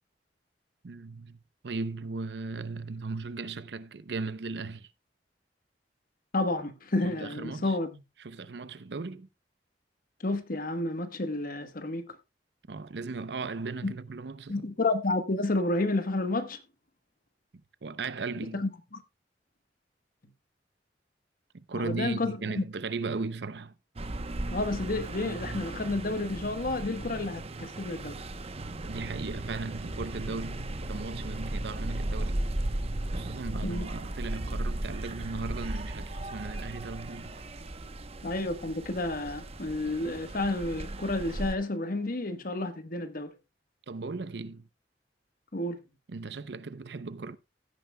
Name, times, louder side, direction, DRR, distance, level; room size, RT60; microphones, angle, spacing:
voice 1, 0.8-4.9 7.0-7.8 8.2-9.3 12.7-14.6 17.8-18.7 21.5-23.7 28.8-32.4 32.8-32.9 33.1-37.3 43.9-44.7 46.1-47.4, right 4 dB, 70° right, 0.6 m, -37 dB
voice 2, 6.3-7.9 10.2-12.2 13.8-13.9 14.5-16.6 18.5-19.0 21.7-22.4 24.5-28.2 33.6-33.8 38.2-43.3 45.5-45.8, left 2 dB, 55° left, 1.1 m, -30 dB
sound 1, 24.0-41.6, right 1 dB, 35° right, 0.8 m, -36 dB
16.0 x 9.3 x 2.2 m
head